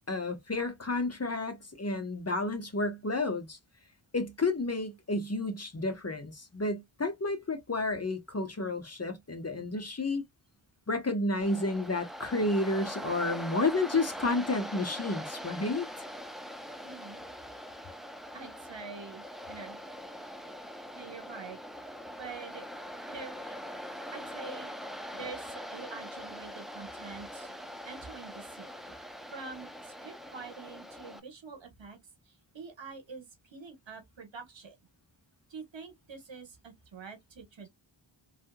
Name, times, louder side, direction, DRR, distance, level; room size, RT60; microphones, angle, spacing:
voice 1, 0.1-3.6 4.1-10.2 10.9-15.9, left 2 dB, 30° left, 0.9 m, -31 dB
Waves surf, 11.4-31.2, equal, ahead, 0.5 m, -42 dB
voice 2, 16.8-17.2 18.3-19.8 20.9-21.6 22.2-22.7 23.1-23.6 24.1-24.7 25.1-27.5 27.8-32.0 32.2-34.7 35.5-37.7, right 5 dB, 65° right, 1.2 m, -46 dB
3.3 x 2.7 x 2.2 m
wide cardioid pair, 65°, 47 cm